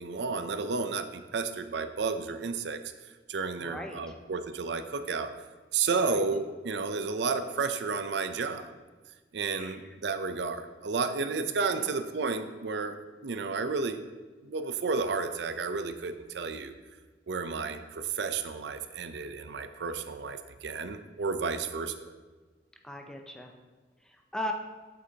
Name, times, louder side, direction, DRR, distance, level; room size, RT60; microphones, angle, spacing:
voice 1, 0.0-2.8 3.3-5.3 5.7-8.6 9.3-13.0 13.2-14.0 14.4-16.7 17.3-22.1, right 4 dB, 65° right, 9 dB, 0.5 m, -32 dB
voice 2, 3.6-4.1 6.0-6.3 9.5-9.9 11.2-11.4 11.7-11.9 22.8-23.5 24.0-24.5, left 1 dB, 5° left, 3 dB, 0.5 m, -39 dB
8.0 x 7.8 x 2.8 m, 1.3 s
head